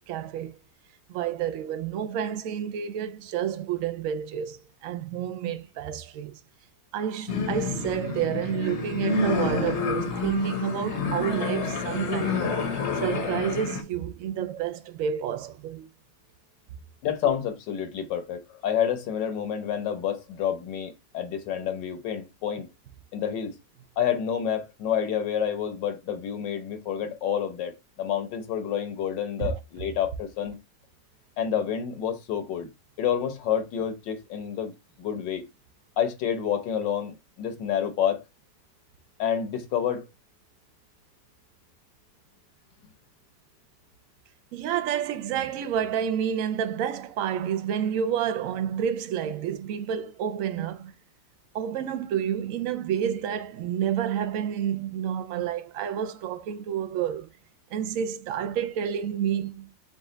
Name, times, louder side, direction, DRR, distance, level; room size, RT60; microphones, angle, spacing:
voice 1, 0.1-0.6 1.1-6.4 6.9-12.6 13.0-15.9 29.4-29.5 44.5-50.9 51.5-57.3 57.7-59.7, right 9 dB, 70° right, 0.8 m, -29 dB
sound 1, 7.3-13.8, left 5 dB, 50° left, 0.9 m, -29 dB
voice 2, 17.0-22.7 23.1-23.6 24.0-30.6 31.4-32.7 33.0-34.7 35.0-35.4 36.0-38.2 39.2-40.1, left 9 dB, 80° left, 1.5 m, -28 dB
5.3 x 2.4 x 3.7 m
omnidirectional pair, 1.9 m